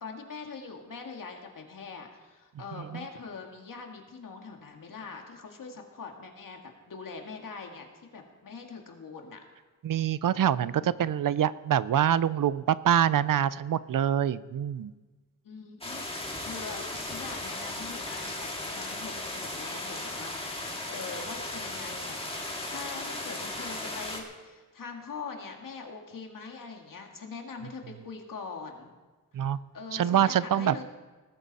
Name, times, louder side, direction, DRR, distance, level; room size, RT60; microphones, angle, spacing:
voice 1, 0.0-7.9 8.1-9.4 10.8-11.1 15.4-16.1 16.4-28.9 29.7-30.8, left 4 dB, 75° left, 2 dB, 2.0 m, -43 dB
voice 2, 9.8-14.9 29.3-29.6 29.9-30.8, right 10 dB, 75° right, 17 dB, 0.5 m, -25 dB
sound 1, 15.8-24.2, left 1 dB, 15° left, 2.0 m, -36 dB
19.5 x 13.5 x 4.2 m, 1.3 s
wide cardioid pair, 180°, 33 cm